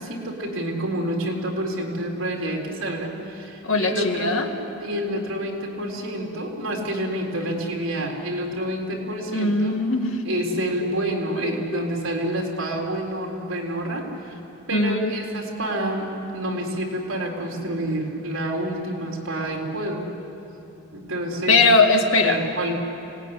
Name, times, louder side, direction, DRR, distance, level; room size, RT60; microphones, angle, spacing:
voice 1, 0.0-4.4 4.8-9.8 10.2-14.4 14.7-20.1 20.9-21.6 22.2-22.8, right 1 dB, 70° right, 0 dB, 4.1 m, -28 dB
voice 2, 3.6-4.5 9.3-10.2 10.8-10.9 11.4-11.8 14.7-15.1 21.5-22.4, left 3 dB, 75° left, 4 dB, 2.1 m, -20 dB
26.0 x 18.5 x 10.0 m, 2.8 s
head